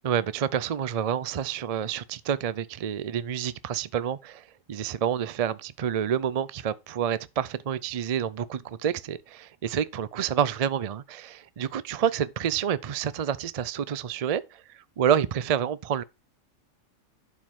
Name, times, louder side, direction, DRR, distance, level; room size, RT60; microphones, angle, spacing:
voice 1, 0.0-16.0, right 9 dB, 60° right, 0.4 m, -28 dB
11.5 x 5.1 x 3.7 m
omnidirectional pair, 1.3 m